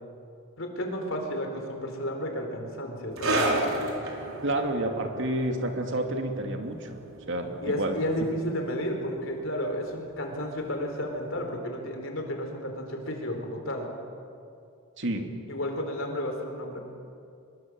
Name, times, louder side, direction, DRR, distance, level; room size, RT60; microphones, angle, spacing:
voice 1, 0.6-3.6 7.6-13.9 15.5-16.8, equal, 65° left, 3 dB, 4.3 m, -32 dB
sound 1, 3.2-10.2 10.4-10.6 11.4-11.5, right 2 dB, 85° right, 4.7 m, -33 dB
voice 2, 4.4-7.0 7.3-8.0 15.0-15.3, right 1 dB, 60° right, 4 dB, 2.6 m, -29 dB
24.5 x 22.5 x 7.8 m, 2.5 s
head